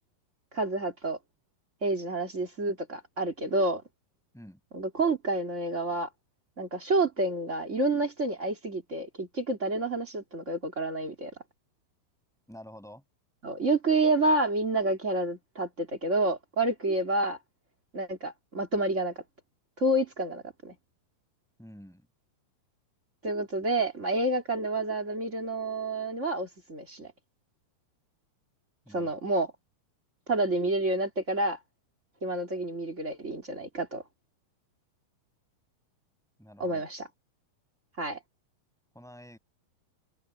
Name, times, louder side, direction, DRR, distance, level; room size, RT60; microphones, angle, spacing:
voice 1, 0.5-1.2 1.8-3.8 4.7-6.1 6.6-11.3 13.4-17.4 17.9-19.2 19.8-20.7 23.2-27.1 28.9-29.5 30.3-31.6 32.2-34.0 36.6-37.1 38.0-38.2, right 2 dB, 20° right, 2.5 m, -29 dB
voice 2, 12.5-13.0 21.6-22.1 28.9-29.1 36.4-36.8 38.9-39.4, equal, ahead, 7.2 m, -48 dB
open air
omnidirectional pair, 4.4 m